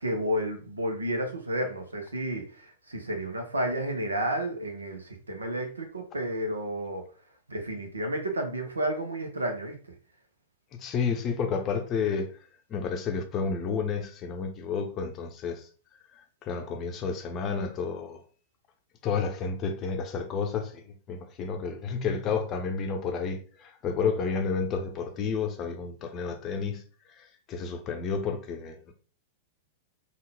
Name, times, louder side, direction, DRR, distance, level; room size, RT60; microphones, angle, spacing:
voice 1, 0.0-2.4 2.9-7.0 7.5-9.7, right 1 dB, 80° right, 0.8 m, -31 dB
voice 2, 10.8-12.3 12.7-15.7 16.4-18.2 19.0-26.8 27.1-28.9, left 5 dB, 30° left, 0.6 m, -31 dB
3.7 x 2.4 x 3.3 m
figure-of-eight pair, 100°, 0 cm